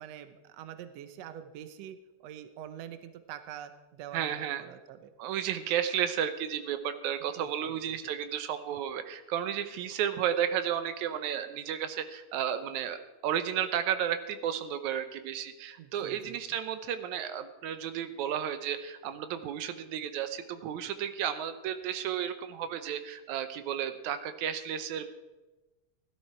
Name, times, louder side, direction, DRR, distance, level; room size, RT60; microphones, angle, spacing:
voice 1, 0.0-5.1 7.4-8.0 15.8-16.4, right 10 dB, 75° right, 10 dB, 1.9 m, -45 dB
voice 2, 4.1-4.8 5.2-25.1, right 9 dB, 90° right, 10 dB, 2.2 m, -33 dB
16.5 x 12.5 x 4.4 m, 1.1 s
omnidirectional pair, 3.3 m